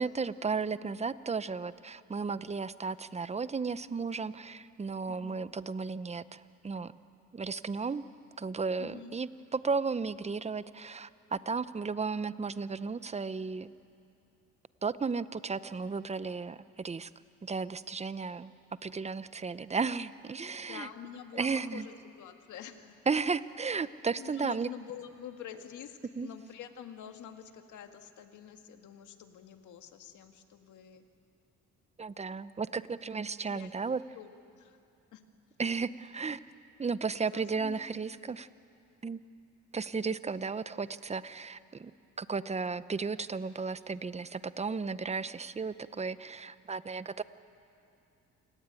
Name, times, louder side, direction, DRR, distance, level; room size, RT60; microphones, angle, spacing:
voice 1, 0.0-6.9 7.3-8.0 8.4-13.7 14.8-17.1 17.4-18.5 18.8-20.9 21.3-21.9 23.1-24.7 26.1-26.3 32.0-34.0 35.6-36.4 36.8-38.5 39.0-39.2 39.7-41.9 42.2-47.2, right 4 dB, 20° right, 15 dB, 0.7 m, -34 dB
voice 2, 5.1-5.4 8.8-9.2 20.6-23.0 24.2-31.0 33.4-33.7 34.1-34.8 35.1-35.2 37.3-37.8, left 9 dB, 75° left, 6 dB, 1.8 m, -47 dB
28.5 x 18.5 x 9.1 m, 2.5 s
cardioid pair, 90°, 30 cm